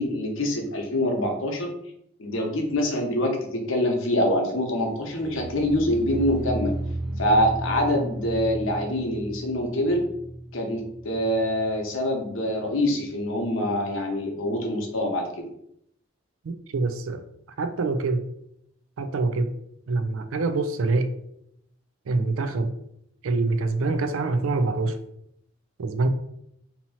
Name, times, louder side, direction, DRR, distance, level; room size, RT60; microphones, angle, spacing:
voice 1, 0.0-1.7 2.2-6.7 7.2-10.0 10.5-15.5, left 1 dB, 70° left, 2 dB, 0.8 m, -25 dB
sound 1, 4.9-12.0 12.3-12.8 13.1-13.2, right 1 dB, 15° right, 0.9 m, -34 dB
voice 2, 16.4-17.2 17.6-18.3 19.0-19.5 19.9-21.1 22.1-22.7 23.2-25.0 25.8-26.1, right 3 dB, 80° right, 10 dB, 0.4 m, -25 dB
2.9 x 2.8 x 4.1 m, 0.74 s
head